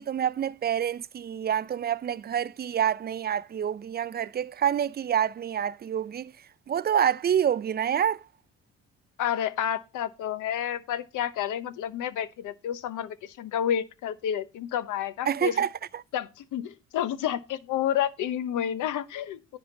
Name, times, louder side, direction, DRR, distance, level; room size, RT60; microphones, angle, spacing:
voice 1, 0.0-6.3 6.7-8.2 15.3-16.0, right 9 dB, 35° right, 0.4 m, -27 dB
voice 2, 9.2-15.6 16.1-19.6, left 10 dB, 85° left, 1.0 m, -30 dB
10.5 x 3.6 x 7.1 m
cardioid pair, 90°, 30 cm